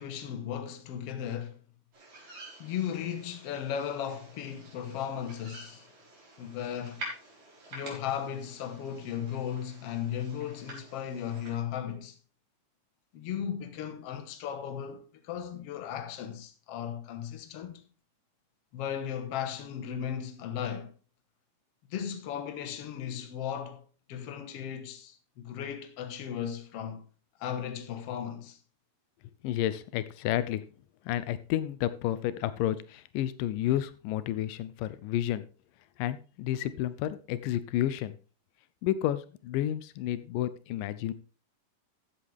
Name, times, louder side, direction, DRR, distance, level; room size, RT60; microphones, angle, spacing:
voice 1, 0.0-1.6 2.6-5.9 6.4-7.0 7.7-12.2 13.1-17.8 18.7-20.9 21.9-27.1 27.4-28.6, left 9 dB, 55° left, 2.0 m, -36 dB
sound 1, 1.9-11.5, right 1 dB, 55° right, 5.5 m, -48 dB
voice 2, 29.4-30.6 31.1-35.4 36.0-38.2 38.8-41.1, left 12 dB, 85° left, 2.3 m, -31 dB
14.5 x 7.8 x 3.5 m
omnidirectional pair, 3.8 m